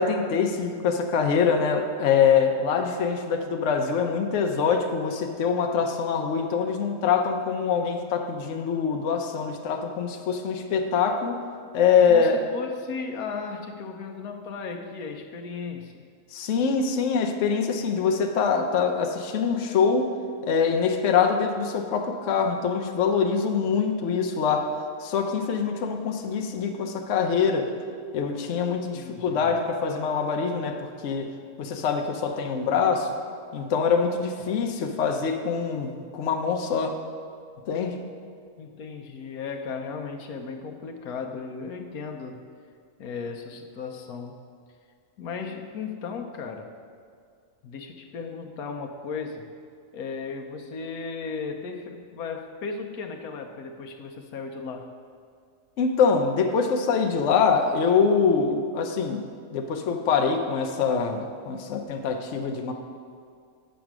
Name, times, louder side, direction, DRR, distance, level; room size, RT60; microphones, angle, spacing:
voice 1, 0.0-11.4 11.7-12.4 16.3-20.1 20.4-24.7 25.0-27.7 28.1-31.3 31.6-33.1 33.5-37.0 37.7-38.0 55.8-59.2 59.5-62.7, left 6 dB, 60° left, 4 dB, 1.0 m, -24 dB
voice 2, 12.0-16.0 28.9-29.6 34.4-34.6 38.6-42.4 43.0-44.4 45.2-46.7 47.6-49.5 49.9-54.9, left 5 dB, 85° left, 4 dB, 1.2 m, -36 dB
8.1 x 6.4 x 6.0 m, 2.2 s
omnidirectional pair, 1.5 m